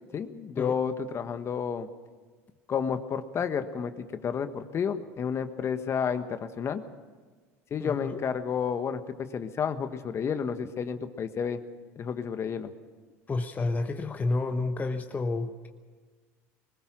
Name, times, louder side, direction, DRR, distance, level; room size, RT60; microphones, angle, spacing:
voice 1, 0.1-1.9 2.7-6.8 7.7-11.6 12.0-12.7, left 7 dB, 40° left, 9 dB, 1.4 m, -31 dB
voice 2, 7.8-8.2 13.3-15.7, left 3 dB, 20° left, 5 dB, 1.2 m, -30 dB
21.5 x 20.0 x 6.3 m, 1.5 s
supercardioid pair, 90°, 7 cm